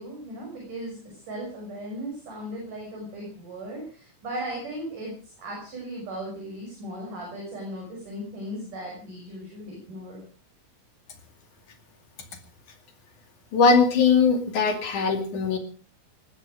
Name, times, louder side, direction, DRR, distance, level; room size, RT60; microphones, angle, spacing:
voice 1, 0.0-10.2, right 1 dB, 40° right, -1 dB, 7.4 m, -37 dB
voice 2, 13.5-15.6, left 5 dB, 45° left, 5 dB, 3.1 m, -20 dB
19.5 x 14.0 x 5.0 m, 0.41 s
omnidirectional pair, 5.9 m